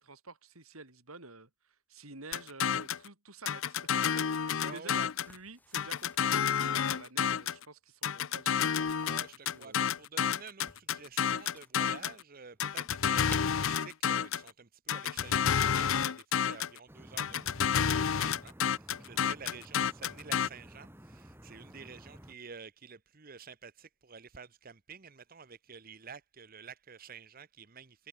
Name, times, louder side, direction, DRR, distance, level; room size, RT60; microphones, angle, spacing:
voice 1, 0.0-4.0 4.4-8.7 9.5-10.0 19.1-19.3, right 3 dB, 85° right, 6.2 m, -50 dB
sound 1, 2.3-3.1 3.5-5.3 5.7-7.6 8.0-12.2 12.6-14.5 14.9-16.8 17.2-20.5, left 8 dB, 70° left, 0.6 m, -30 dB
voice 2, 4.6-5.0 9.1-28.1, right 5 dB, 40° right, 0.9 m, -50 dB
sound 2, 5.2-7.1 8.5-9.9 10.6-11.9 12.3-13.4, left 1 dB, 10° left, 0.9 m, -53 dB
sound 3, 16.9-22.3, equal, 10° right, 2.7 m, -53 dB
head